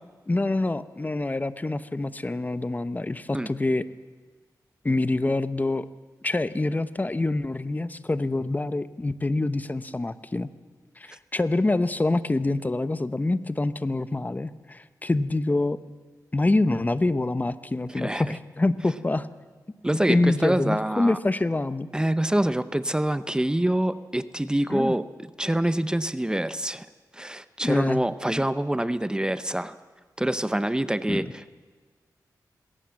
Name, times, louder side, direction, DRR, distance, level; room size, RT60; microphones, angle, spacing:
voice 1, 0.3-3.8 4.8-5.9 6.2-10.5 11.0-15.8 16.3-19.3 20.1-21.9 24.7-25.0 27.6-28.0 28.3-28.4 31.1-31.2, left 2 dB, 25° left, 14 dB, 0.8 m, -26 dB
voice 2, 17.9-18.4 19.8-21.2 21.9-26.9 27.1-29.8 30.2-31.5, right 1 dB, 10° right, 13 dB, 0.7 m, -26 dB
20.5 x 17.5 x 7.6 m, 1.5 s
cardioid pair, 75°, 7 cm